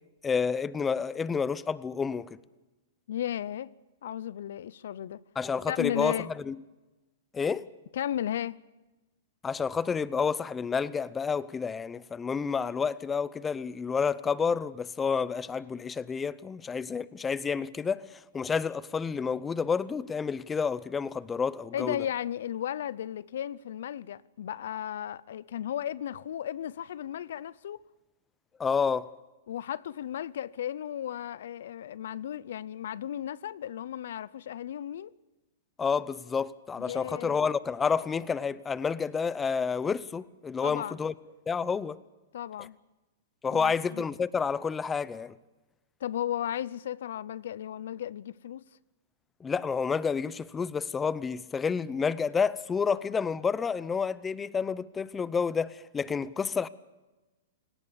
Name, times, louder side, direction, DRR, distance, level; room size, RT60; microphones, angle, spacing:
voice 1, 0.2-2.3 5.4-6.2 6.5-6.6 7.3-7.7 9.4-18.0 18.3-22.0 28.6-29.1 35.8-41.1 41.5-42.0 43.4-45.3 49.4-56.7, left 6 dB, 15° left, 0.7 m, -29 dB
voice 2, 3.1-3.7 4.0-5.2 5.7-6.3 7.9-8.6 21.7-27.8 29.5-35.1 36.8-37.5 40.6-41.0 42.3-42.8 43.5-44.0 46.0-48.6, left 10 dB, 70° left, 0.7 m, -35 dB
28.0 x 18.0 x 7.0 m
hypercardioid pair, 135°, 0 cm